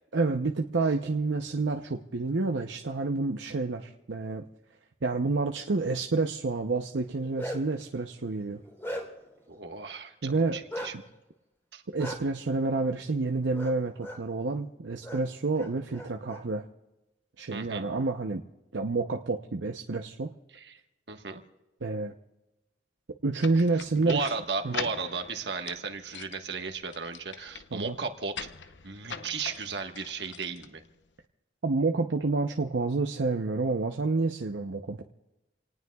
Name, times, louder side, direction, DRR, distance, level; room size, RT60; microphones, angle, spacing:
voice 1, 0.1-4.4 5.0-8.6 10.2-10.6 10.9-11.0 11.9-16.6 17.4-18.4 18.7-20.3 21.8-22.1 23.2-24.3 24.6-24.8 27.7-28.0 31.6-35.0, right 3 dB, 85° right, 3 dB, 0.7 m, -29 dB
Bark, 7.0-7.8 8.3-9.3 10.7-10.9 12.0-12.2 13.5-13.7 14.0-14.2 15.0-15.2 15.5-16.4, equal, 15° left, 3.5 m, -37 dB
voice 2, 9.5-10.9 11.7-11.8 17.5-17.9 20.5-20.8 21.1-21.4 23.7-28.5 28.8-30.8, right 4 dB, 65° right, 5 dB, 1.4 m, -35 dB
sound 1, 23.4-31.2, left 6 dB, 80° left, 0.8 m, -43 dB
28.5 x 19.0 x 2.3 m, 0.99 s
head